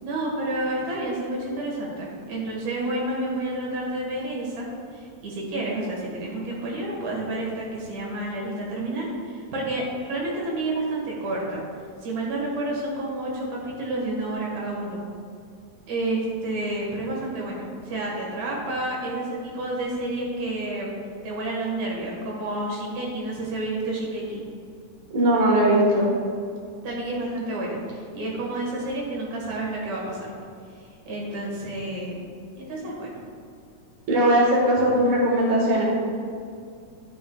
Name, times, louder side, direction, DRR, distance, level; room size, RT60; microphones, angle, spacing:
voice 1, 0.0-4.7 4.9-11.6 12.0-15.0 15.9-20.9 21.2-24.4 26.8-30.3 31.1-32.2 32.6-33.2 34.9-35.0, right 2 dB, 70° right, -4 dB, 2.9 m, -30 dB
voice 2, 25.1-26.1 34.1-35.8, right 1 dB, 50° right, -4 dB, 2.2 m, -19 dB
11.0 x 7.6 x 2.3 m, 2.3 s
omnidirectional pair, 3.4 m